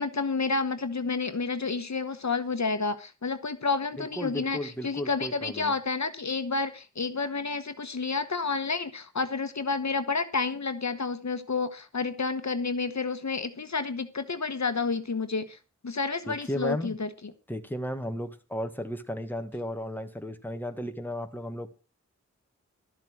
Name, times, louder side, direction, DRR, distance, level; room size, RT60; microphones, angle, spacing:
voice 1, 0.0-15.6 15.8-17.1, left 4 dB, 70° left, 10 dB, 1.1 m, -30 dB
voice 2, 4.0-5.7 16.3-17.0 17.5-21.7, equal, 5° left, 7 dB, 1.6 m, -34 dB
12.5 x 7.5 x 6.2 m, 0.32 s
wide cardioid pair, 50°, 29 cm